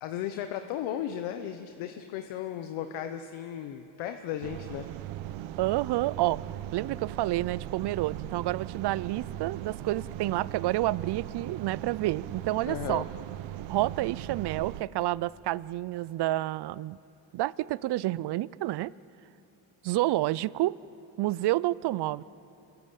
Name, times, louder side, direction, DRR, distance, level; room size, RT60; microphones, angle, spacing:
voice 1, 0.0-4.9 12.6-13.0, left 10 dB, 90° left, 7 dB, 1.2 m, -35 dB
sound 1, 4.4-14.8, right 13 dB, 80° right, 1.0 m, -39 dB
voice 2, 5.6-6.4 6.7-13.1 13.7-17.0 17.3-18.9 19.8-20.8 21.2-22.2, right 16 dB, 60° right, 21 dB, 0.6 m, -29 dB
28.0 x 22.5 x 8.5 m, 2.9 s
cardioid pair, 85°, 46 cm